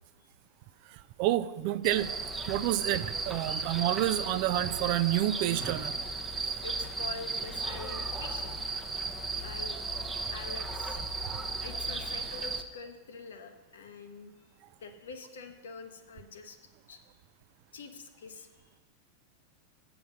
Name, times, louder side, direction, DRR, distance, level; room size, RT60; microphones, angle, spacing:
voice 1, 0.9-2.1 2.5-6.1, right 14 dB, 45° right, 15 dB, 0.4 m, -29 dB
sound 1, 1.8-12.6, right 3 dB, 15° right, 0.7 m, -35 dB
voice 2, 6.6-8.7 9.3-9.8 10.3-11.0 11.5-14.5 14.8-16.6 16.9-17.0 17.7-18.7, left 5 dB, 65° left, 7 dB, 0.9 m, -45 dB
7.8 x 6.9 x 6.3 m, 1.3 s
figure-of-eight pair, 90°, 0 cm